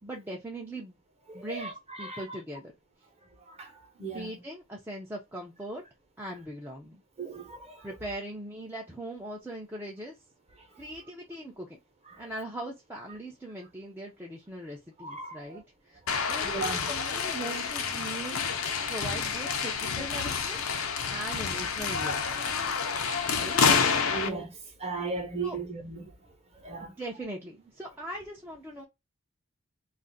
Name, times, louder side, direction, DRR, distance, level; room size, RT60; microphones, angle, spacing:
voice 1, 0.0-1.0 1.3-1.7 2.0-2.7 4.1-5.8 6.2-7.0 7.8-10.2 10.8-11.8 12.2-18.4 18.9-20.6 21.1-22.5 23.3-23.6 25.4-25.6 26.8-28.8, right 1 dB, 10° right, 0.4 m, -40 dB
voice 2, 1.3-2.4 3.5-4.3 7.2-7.9 12.1-12.2 15.0-15.6 16.4-16.8 24.1-26.0 26.6-26.9, right 3 dB, 30° right, 0.8 m, -37 dB
sound 1, 16.1-24.3, left 6 dB, 75° left, 0.6 m, -28 dB
2.5 x 2.5 x 3.8 m
head